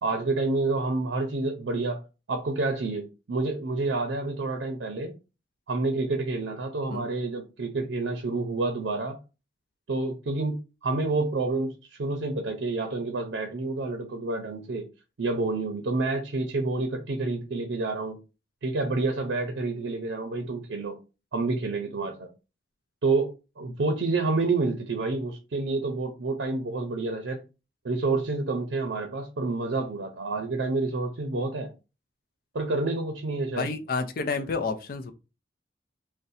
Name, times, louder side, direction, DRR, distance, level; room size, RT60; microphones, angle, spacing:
voice 1, 0.0-2.0 2.3-5.1 5.7-9.2 9.9-14.8 15.2-18.2 18.6-21.0 21.3-22.3 23.0-27.4 27.8-31.7 32.5-33.7, right 3 dB, 85° right, 0.5 m, -28 dB
voice 2, 33.6-35.1, left 4 dB, 50° left, 0.4 m, -30 dB
2.6 x 2.1 x 4.0 m
head